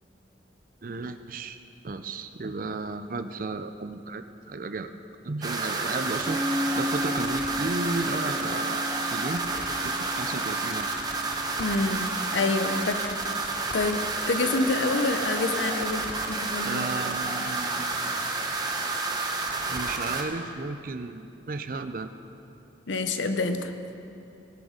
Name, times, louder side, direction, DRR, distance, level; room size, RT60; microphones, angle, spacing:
voice 1, 0.8-1.6 1.8-4.9 5.2-11.1 16.6-18.3 19.7-22.1, right 3 dB, 50° right, 10 dB, 0.5 m, -34 dB
sound 1, 5.4-20.2, right 3 dB, 20° right, 0.8 m, -30 dB
Piano, 6.2-13.5, left 1 dB, ahead, 1.1 m, -35 dB
voice 2, 11.6-13.2 13.7-14.0 14.3-16.9 22.9-23.7, left 3 dB, 90° left, 8 dB, 0.8 m, -27 dB
18.5 x 6.3 x 5.0 m, 2.8 s
head